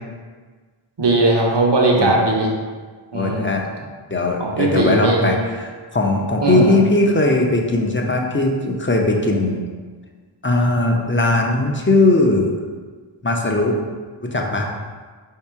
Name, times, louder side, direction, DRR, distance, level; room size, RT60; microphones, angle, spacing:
voice 1, 1.0-2.5 3.1-3.5 4.4-5.4 6.4-6.8, right 2 dB, 60° right, -1 dB, 0.9 m, -18 dB
voice 2, 3.1-3.6 4.1-9.7 10.4-12.5 13.2-13.8 14.2-14.7, left 2 dB, 25° left, 1 dB, 0.6 m, -19 dB
4.1 x 2.8 x 4.6 m, 1.5 s
wide cardioid pair, 45°, 47 cm